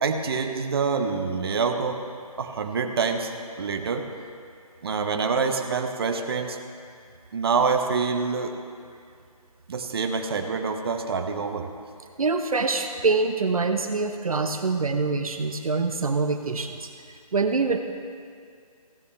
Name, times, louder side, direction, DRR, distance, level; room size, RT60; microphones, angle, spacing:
voice 1, 0.0-2.0 2.4-3.3 3.6-4.0 4.8-6.6 7.3-8.5 9.7-11.7, right 5 dB, 40° right, 5 dB, 1.0 m, -26 dB
voice 2, 12.2-16.9 17.3-17.8, right 4 dB, 65° right, 6 dB, 0.9 m, -25 dB
15.5 x 15.0 x 3.3 m, 2.3 s
figure-of-eight pair, 155°, 20 cm